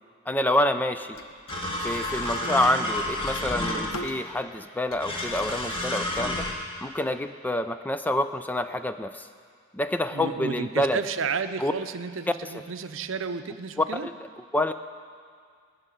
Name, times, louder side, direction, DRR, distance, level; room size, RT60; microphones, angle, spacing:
voice 1, 0.3-1.2 1.8-6.5 6.8-9.3 9.7-11.0 11.6-11.7 14.0-14.1 14.5-14.7, left 1 dB, 10° left, 9 dB, 0.4 m, -27 dB
sound 1, 1.1-4.5 4.8-5.8, left 2 dB, 80° left, 1.0 m, -42 dB
sound 2, 1.5-4.1 5.0-6.5, left 1 dB, 25° left, 2.0 m, -30 dB
voice 2, 10.1-14.1, right 5 dB, 70° right, 10 dB, 0.6 m, -32 dB
16.0 x 6.6 x 9.7 m, 2.2 s
head